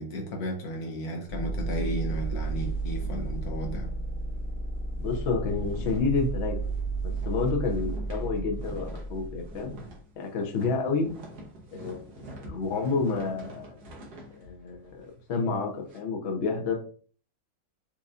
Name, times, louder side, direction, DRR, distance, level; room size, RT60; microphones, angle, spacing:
voice 1, 0.0-3.9, equal, 65° left, 0.9 m, -34 dB
sound 1, 1.3-10.0, right 3 dB, 30° left, 0.9 m, -32 dB
sound 2, 1.7-4.0 4.3-4.5 4.8-16.0, right 1 dB, 55° right, 1.3 m, -47 dB
voice 2, 5.0-6.6 7.2-9.7 10.2-11.1 11.7-12.1 12.4-13.7 14.4-16.7, left 4 dB, 85° left, 0.6 m, -29 dB
4.5 x 2.7 x 2.4 m
omnidirectional pair, 2.3 m